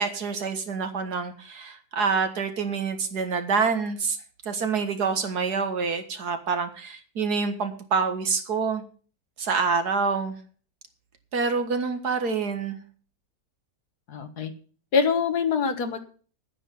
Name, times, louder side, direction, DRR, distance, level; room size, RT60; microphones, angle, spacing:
voice 1, 0.0-4.2 4.5-8.8 9.4-10.4 11.3-12.8, right 5 dB, 65° right, 7 dB, 2.2 m, -27 dB
voice 2, 14.1-14.5 14.9-16.0, left 5 dB, 70° left, 8 dB, 1.9 m, -24 dB
9.9 x 9.9 x 7.0 m, 0.41 s
omnidirectional pair, 1.8 m